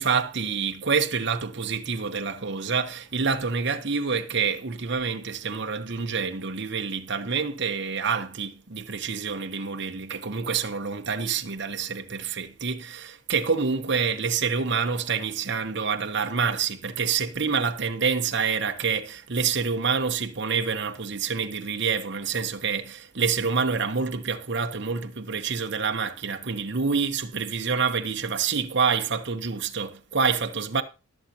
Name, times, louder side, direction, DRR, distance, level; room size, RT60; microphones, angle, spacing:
voice 1, 0.0-30.8, right 5 dB, 55° right, 0.9 m, -27 dB
19.5 x 7.1 x 2.9 m
head